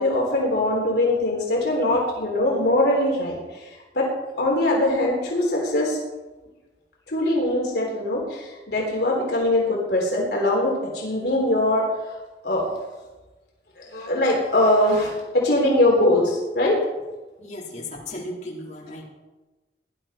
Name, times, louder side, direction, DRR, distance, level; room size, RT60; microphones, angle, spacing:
voice 1, 0.0-4.1 4.4-6.0 7.1-11.8 12.4-12.7 13.8-16.8, left 1 dB, 65° left, -2 dB, 3.7 m, -22 dB
voice 2, 17.4-19.1, left 1 dB, 45° left, -5 dB, 4.2 m, -35 dB
19.0 x 11.5 x 4.5 m, 1.2 s
head